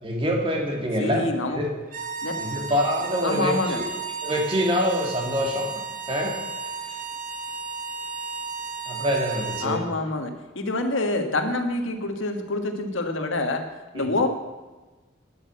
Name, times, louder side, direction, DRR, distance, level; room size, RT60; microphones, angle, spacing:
voice 1, 0.0-1.7 2.4-3.8 4.2-5.7 6.1-6.4 6.8-7.0 8.9-9.8 14.0-14.1, equal, 25° right, 1 dB, 2.1 m, -25 dB
voice 2, 1.0-1.6 2.2-2.4 3.2-3.8 9.6-13.6 13.9-14.3, left 2 dB, 80° left, 5 dB, 1.5 m, -26 dB
sound 1, 1.8-9.7, right 5 dB, 45° right, 1.1 m, -33 dB
10.5 x 8.5 x 7.4 m, 1.2 s
head